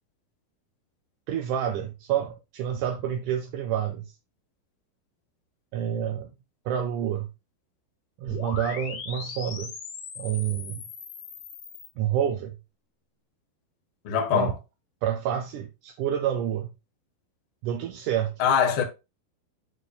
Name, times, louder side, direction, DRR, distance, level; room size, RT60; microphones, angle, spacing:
voice 1, 1.3-4.1 5.7-6.3 6.7-7.3 8.2-9.7 10.2-10.8 12.0-12.5 14.3-14.5 15.0-16.7 17.6-18.3, right 9 dB, 75° right, 1.9 m, -28 dB
sound 1, 8.3-11.9, left 6 dB, 85° left, 3.4 m, -39 dB
voice 2, 14.0-14.5 18.4-18.8, left 8 dB, 70° left, 1.2 m, -23 dB
11.5 x 4.5 x 2.2 m
omnidirectional pair, 4.3 m